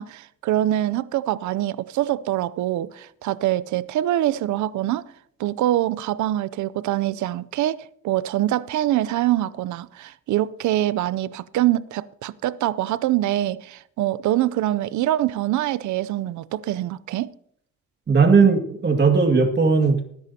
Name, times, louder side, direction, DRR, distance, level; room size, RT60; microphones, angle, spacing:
voice 1, 0.0-5.0 5.4-7.8 8.0-17.3, right 13 dB, 75° right, 0.6 m, -24 dB
voice 2, 18.1-20.1, right 5 dB, 35° right, 2.1 m, -17 dB
19.5 x 10.5 x 2.8 m
cardioid pair, 90°, 30 cm